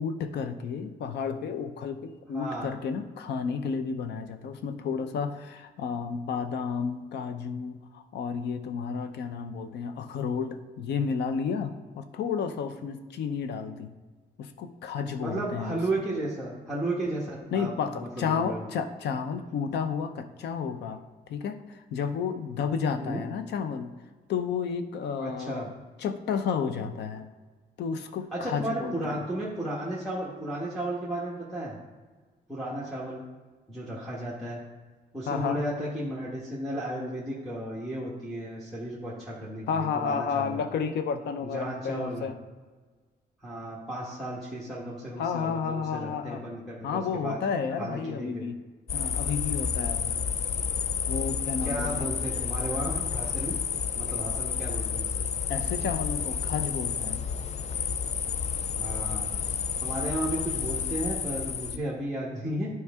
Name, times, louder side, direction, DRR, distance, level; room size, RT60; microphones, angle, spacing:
voice 1, 0.0-13.9 14.4-15.8 17.5-21.0 21.3-23.9 24.3-25.7 26.0-27.3 27.8-29.2 35.3-35.6 39.7-42.4 45.2-46.4 46.8-48.6 48.9-50.1 51.1-52.1 55.5-57.2, left 6 dB, 80° left, 9 dB, 0.7 m, -31 dB
voice 2, 2.3-2.7 15.2-18.6 23.0-23.2 25.2-25.7 28.3-31.7 32.5-33.2 33.7-34.6 35.1-40.6 41.5-42.3 43.4-47.4 47.8-48.4 51.6-53.5 53.9-55.2 58.8-59.3 59.8-62.7, right 1 dB, ahead, -7 dB, 1.3 m, -34 dB
sound 1, 48.9-61.8, left 7 dB, 40° left, 0.4 m, -30 dB
11.0 x 4.7 x 3.6 m, 1.4 s
cardioid pair, 135°, 17 cm